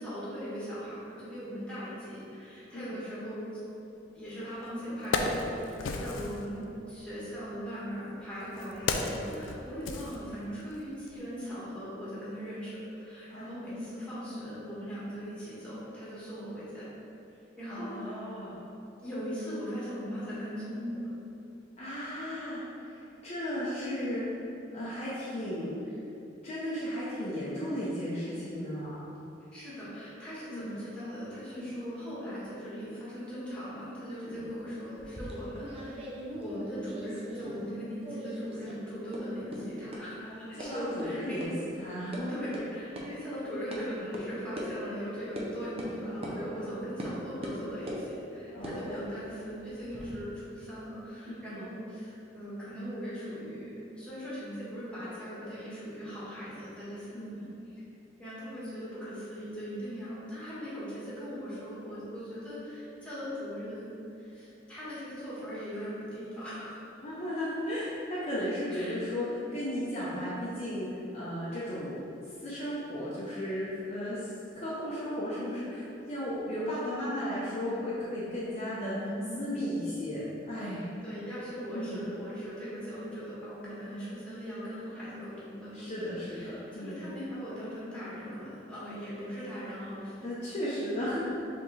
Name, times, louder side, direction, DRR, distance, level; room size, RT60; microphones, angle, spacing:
voice 1, 0.0-3.5 4.1-16.9 17.6-18.2 19.0-21.1 29.5-36.1 36.4-41.4 42.3-57.5 58.2-66.8 68.7-68.9 78.7-79.6 81.0-90.2, equal, 5° left, -10 dB, 1.4 m, -39 dB
Wood, 4.3-4.4 4.8-6.4 7.4-10.7 11.1-11.2, left 3 dB, 80° left, 0.4 m, -34 dB
voice 2, 17.7-18.6 21.8-24.5 24.7-26.0 26.4-29.0 30.5-30.8 31.8-31.9 34.3-34.5 40.3-42.4 46.6-46.8 48.5-49.1 51.3-51.7 57.1-57.3 67.0-79.1 79.3-80.9 81.7-82.0 85.7-87.0 90.2-91.2, equal, 35° left, -9 dB, 0.7 m, -35 dB
sound 1, 35.0-37.8 38.0-38.8 39.1-39.2 39.5-39.6 39.9-40.0 40.6-40.7 41.0-41.1 41.4-41.5 41.8-42.2 42.5-42.6 43.0-43.1 43.7-43.8 44.1-44.2 44.6-44.7 45.4-45.5 45.8-45.9 46.2-46.4 47.0-47.1 47.4-48.0 48.5-50.1, equal, 30° right, 0.6 m, -40 dB
4.8 x 3.5 x 3.2 m, 2.8 s
head